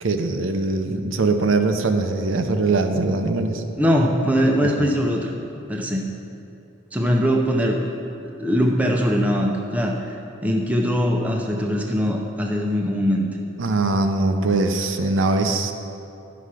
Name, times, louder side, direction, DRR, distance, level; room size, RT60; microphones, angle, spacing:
voice 1, 0.0-3.6 13.6-15.7, right 3 dB, 70° right, 6 dB, 0.6 m, -21 dB
voice 2, 3.8-5.3 5.7-6.1 6.9-7.9 8.4-10.1 10.4-13.3, equal, 5° right, 0 dB, 0.6 m, -21 dB
11.5 x 5.8 x 4.9 m, 2.7 s
head